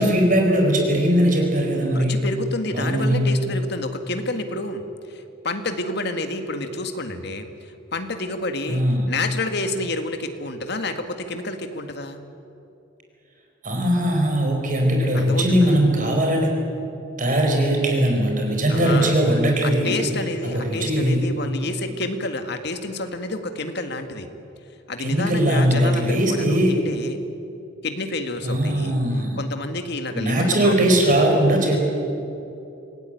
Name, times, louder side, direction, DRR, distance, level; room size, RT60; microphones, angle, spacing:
voice 1, 0.0-2.1 2.7-3.3 8.7-9.1 13.6-16.6 17.2-20.1 20.4-21.2 25.0-26.8 28.4-29.4 30.1-31.8, right 1 dB, 45° right, 2 dB, 4.9 m, -20 dB
voice 2, 1.9-7.5 7.9-12.2 15.1-15.8 18.7-19.2 19.6-24.3 24.9-27.2 27.8-29.0 29.4-31.2, left 2 dB, 60° left, 7 dB, 1.9 m, -29 dB
26.0 x 17.5 x 9.2 m, 2.9 s
head